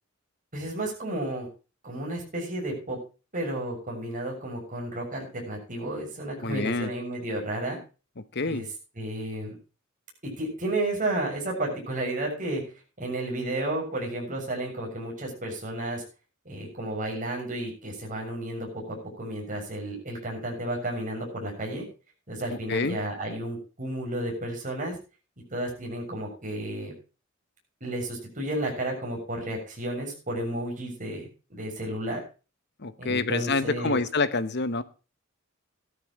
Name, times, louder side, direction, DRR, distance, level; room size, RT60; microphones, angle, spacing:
voice 1, 0.5-1.5 1.8-3.0 3.3-7.8 8.4-8.6 9.0-9.5 10.2-12.6 13.0-16.0 16.4-21.8 22.3-24.9 25.5-26.9 27.8-32.2 33.0-34.0, right 1 dB, 40° right, 0 dB, 6.8 m, -32 dB
voice 2, 6.4-6.9 8.3-8.6 22.7-23.0 32.8-34.8, left 3 dB, 55° left, 13 dB, 1.0 m, -27 dB
15.5 x 12.5 x 3.1 m, 0.34 s
head